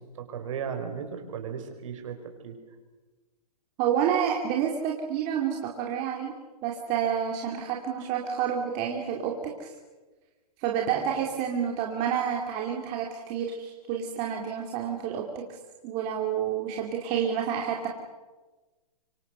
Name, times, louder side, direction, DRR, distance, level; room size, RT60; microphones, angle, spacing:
voice 1, 0.0-2.6, right 7 dB, 50° right, 5 dB, 5.3 m, -36 dB
voice 2, 3.8-6.3 6.6-9.7 10.6-15.4 15.8-17.9, right 8 dB, 25° right, 0 dB, 2.6 m, -29 dB
26.0 x 25.0 x 6.8 m, 1.2 s
hypercardioid pair, 155°, 20 cm